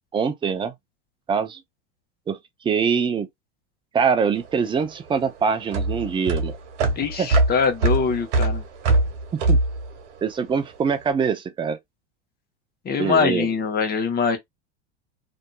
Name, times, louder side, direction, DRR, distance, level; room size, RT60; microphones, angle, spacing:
voice 1, 0.1-0.7 1.3-1.6 2.3-3.3 3.9-6.6 7.2-7.3 9.5-9.6 10.2-11.8 13.0-13.5, right 6 dB, 15° right, 0.5 m, -23 dB
sound 1, 4.4-10.9, right 2 dB, 75° right, 1.2 m, -23 dB
voice 2, 7.0-8.6 12.8-14.4, left 5 dB, 25° left, 1.1 m, -23 dB
2.8 x 2.6 x 2.3 m
supercardioid pair, 115°, 35 cm